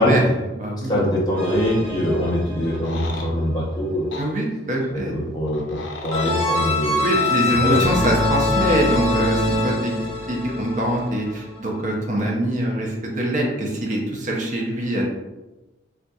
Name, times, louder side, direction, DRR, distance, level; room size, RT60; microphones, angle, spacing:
voice 1, 0.0-1.0 4.2-5.1 7.0-9.9 10.3-15.0, right 1 dB, 40° right, -1 dB, 0.6 m, -24 dB
voice 2, 0.9-4.2 4.9-5.6 6.0-7.1 7.6-7.8, equal, 20° left, -6 dB, 0.8 m, -22 dB
sound 1, 1.4-3.4 6.1-11.6, left 2 dB, 70° right, 1.1 m, -24 dB
sound 2, 2.6-3.3 4.1-4.3 5.5-6.4 7.2-7.3, left 2 dB, 70° left, 0.5 m, -35 dB
4.0 x 2.4 x 2.3 m, 1.1 s
head